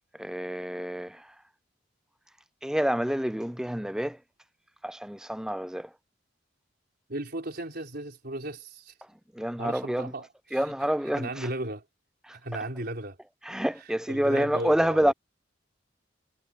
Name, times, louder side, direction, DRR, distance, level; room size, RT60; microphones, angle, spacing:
voice 1, 0.2-1.3 2.6-4.2 4.8-5.9 9.3-10.1 10.5-11.5 12.2-12.4 13.4-15.1, equal, 5° right, 0.5 m, -28 dB
voice 2, 7.1-8.9 9.6-10.6 11.2-11.8 12.3-13.2 14.1-15.0, right 1 dB, 55° right, 4.5 m, -35 dB
head